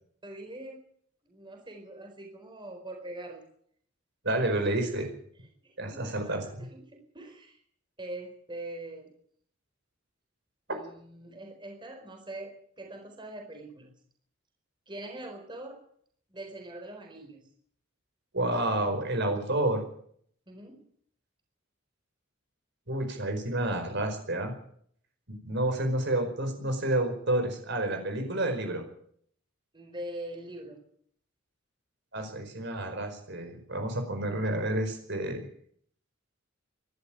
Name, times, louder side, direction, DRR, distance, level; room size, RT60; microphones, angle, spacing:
voice 1, 0.2-0.8 1.2-3.4 5.6-7.6 8.0-9.1 10.7-13.9 14.9-15.8 16.3-17.4 20.5-20.8 29.7-30.8, right 1 dB, 25° right, 3 dB, 4.4 m, -43 dB
voice 2, 4.2-5.1 5.8-6.4 18.3-19.8 22.9-24.5 25.3-28.8 32.1-35.4, right 1 dB, 60° right, 6 dB, 5.0 m, -29 dB
24.5 x 12.0 x 9.0 m, 0.64 s
head